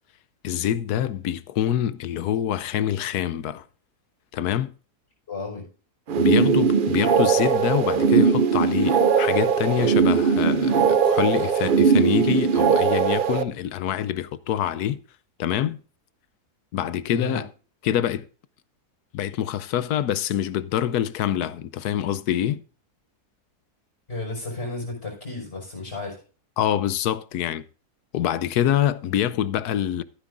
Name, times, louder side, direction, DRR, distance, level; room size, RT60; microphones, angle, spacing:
voice 1, 0.4-3.6 4.3-4.7 6.1-15.0 15.4-15.8 16.7-17.5 17.8-18.2 19.1-22.6 26.6-27.6 28.1-30.0, left 10 dB, 75° left, 1.2 m, -25 dB
voice 2, 5.3-5.7 17.1-17.4 24.1-26.2, left 2 dB, 40° left, 5.8 m, -33 dB
sound 1, 6.1-13.4, right 6 dB, 85° right, 0.4 m, -20 dB
14.5 x 9.5 x 2.5 m
omnidirectional pair, 1.7 m